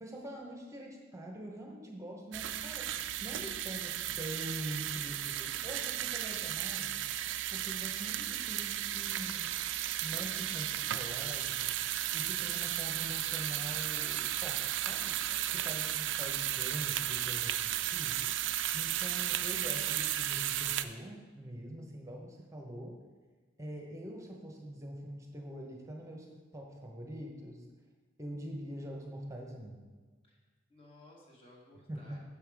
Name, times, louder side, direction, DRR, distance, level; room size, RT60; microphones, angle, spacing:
voice 1, 0.0-7.0 7.5-9.5 10.0-11.7 12.1-15.1 15.5-18.2 18.7-22.9 23.6-26.3 26.5-27.6 28.2-29.8 31.9-32.2, right 1 dB, 15° right, 1 dB, 0.9 m, -44 dB
sound 1, 2.3-20.8, right 12 dB, 65° right, 0.3 m, -34 dB
voice 2, 15.3-15.7 30.3-30.4 30.7-32.2, left 1 dB, 30° left, -3 dB, 1.6 m, -58 dB
7.2 x 5.6 x 4.8 m, 1.4 s
head